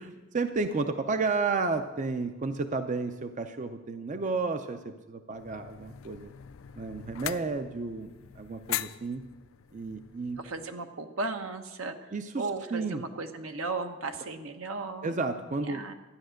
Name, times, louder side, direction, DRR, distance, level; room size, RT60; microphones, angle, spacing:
voice 1, 0.0-6.3 6.8-9.2 9.7-10.4 12.1-12.5 12.7-13.0 15.0-15.8, right 3 dB, 35° right, 8 dB, 0.5 m, -32 dB
sound 1, 5.3-10.7, left 12 dB, 70° left, 0.4 m, -41 dB
voice 2, 10.4-15.3 15.6-15.9, right 3 dB, 75° right, 6 dB, 1.0 m, -36 dB
13.0 x 10.0 x 6.4 m, 1.2 s
head